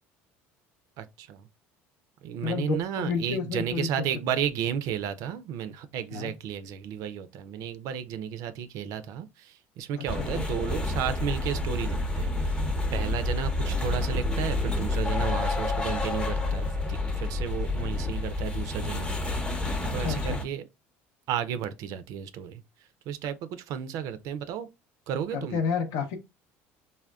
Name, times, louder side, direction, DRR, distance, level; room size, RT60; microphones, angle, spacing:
voice 1, 1.0-1.5 2.2-19.1 19.4-20.6 21.3-22.6 23.1-24.7 25.1-25.6, right 9 dB, 65° right, 0.4 m, -33 dB
voice 2, 2.4-4.3 6.1-6.3 10.0-10.4 19.8-20.5 25.3-26.2, left 5 dB, 70° left, 0.6 m, -31 dB
sound 1, 10.1-20.4, left 2 dB, 15° left, 0.6 m, -29 dB
3.5 x 2.2 x 2.3 m
supercardioid pair, 85°, 6 cm